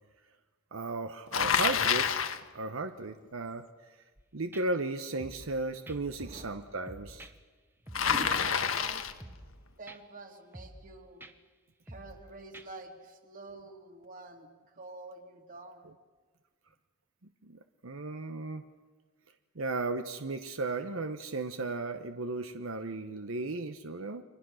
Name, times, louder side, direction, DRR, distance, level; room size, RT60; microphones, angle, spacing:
voice 1, 0.7-2.1 2.5-3.6 4.3-7.3 17.4-18.6 19.5-24.2, right 3 dB, 85° right, 7 dB, 1.0 m, -35 dB
Bicycle, 1.3-2.4 7.9-9.2, left 7 dB, 85° left, 1.3 m, -28 dB
sound 1, 4.2-4.3 4.5-4.6 5.2-5.6 5.9-6.6 6.9-7.3 7.9-8.2 8.5-8.6 9.2-9.6 9.9-10.0 10.5-10.9 11.2-11.3 11.9-12.2 12.5-12.7, right 1 dB, 10° right, 1.1 m, -48 dB
voice 2, 6.2-6.8 7.9-9.1 9.8-11.3 11.9-14.5 14.7-15.9, right 2 dB, 45° right, 4 dB, 2.7 m, -46 dB
29.5 x 23.5 x 6.4 m, 1.4 s
head